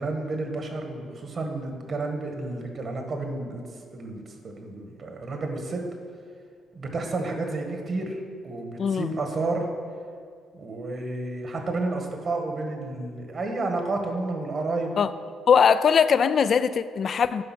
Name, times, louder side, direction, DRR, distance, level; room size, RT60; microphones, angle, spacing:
voice 1, 0.0-3.7 3.9-5.8 6.7-8.2 8.4-9.7 10.5-14.9, right 2 dB, 50° right, 4 dB, 1.5 m, -31 dB
voice 2, 8.8-9.1 15.0-15.1 15.5-17.4, left 6 dB, 55° left, 13 dB, 0.3 m, -20 dB
9.9 x 5.6 x 6.0 m, 2.1 s
cardioid pair, 90°, 0 cm